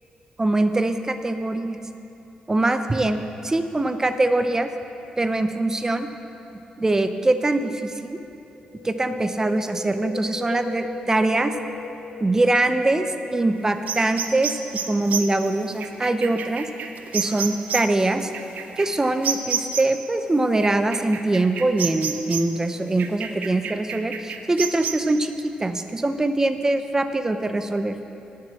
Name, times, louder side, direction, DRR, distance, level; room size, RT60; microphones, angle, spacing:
voice 1, 0.4-1.8 2.5-4.7 5.2-6.1 6.8-8.2 8.8-11.5 12.2-16.7 17.1-18.3 18.8-27.9, right 2 dB, 20° right, 9 dB, 0.6 m, -23 dB
Wind, 8.7-13.0 13.3-13.4, left 4 dB, 65° left, 0.7 m, -37 dB
sound 1, 13.9-20.0 20.6-22.6 23.0-24.9, right 7 dB, 70° right, 0.7 m, -30 dB
11.0 x 6.7 x 7.4 m, 2.8 s
cardioid pair, 90°, 3 cm